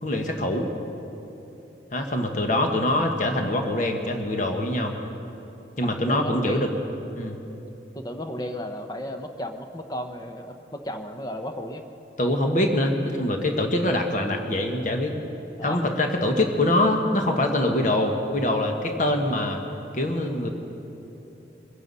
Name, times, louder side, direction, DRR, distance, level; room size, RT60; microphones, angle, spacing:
voice 1, 0.0-0.7 1.9-4.9 5.8-6.7 7.1-7.4 12.2-15.2 15.6-19.6 19.9-20.5, left 1 dB, 45° left, 3 dB, 1.3 m, -24 dB
voice 2, 5.8-6.7 7.9-11.8 15.6-15.8, equal, 20° left, 6 dB, 0.8 m, -34 dB
22.5 x 10.0 x 5.5 m, 3.0 s
head